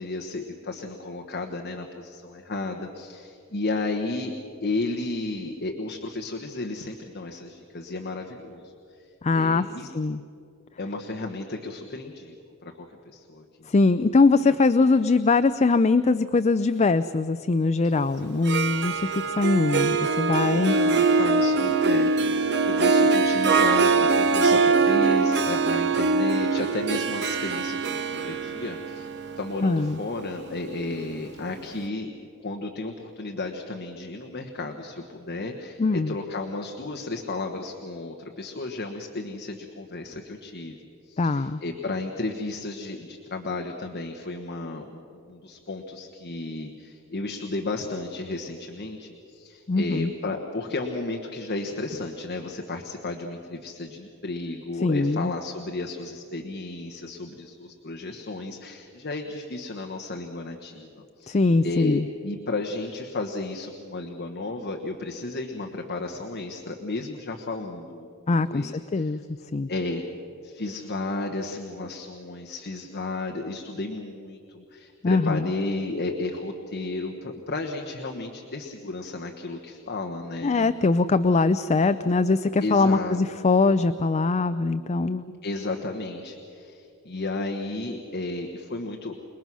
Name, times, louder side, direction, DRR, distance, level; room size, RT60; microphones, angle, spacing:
voice 1, 0.0-8.7 9.0-9.1 9.3-9.9 10.8-12.3 12.6-13.7 14.5-14.6 18.2-18.5 20.4-22.1 22.4-32.1 32.4-40.8 41.1-69.1 69.7-70.0 70.4-80.8 82.6-83.2 85.4-89.1, left 2 dB, 45° left, 3 dB, 1.3 m, -33 dB
voice 2, 9.2-9.6 9.9-10.2 13.7-20.8 29.6-30.0 35.8-36.1 41.2-41.6 49.7-50.1 54.8-55.3 61.3-62.1 68.3-69.2 69.5-69.7 75.0-75.5 80.4-85.2, left 3 dB, 30° left, 12 dB, 0.4 m, -22 dB
Harp, 18.3-31.2, right 4 dB, 50° right, 0.9 m, -23 dB
27.5 x 20.5 x 6.2 m, 2.6 s
head